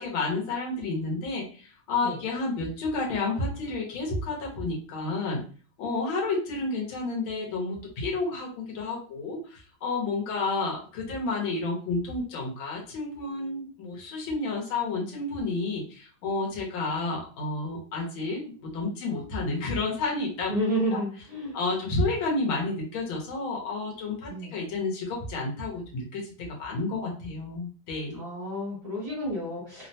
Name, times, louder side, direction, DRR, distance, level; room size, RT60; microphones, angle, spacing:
voice 1, 0.0-5.4 5.8-20.5 21.5-28.2, left 3 dB, 85° left, -1 dB, 1.7 m, -30 dB
voice 2, 20.5-21.6 24.3-24.5 28.1-29.9, equal, 45° right, -4 dB, 1.5 m, -30 dB
3.7 x 2.1 x 2.7 m, 0.40 s
omnidirectional pair, 2.2 m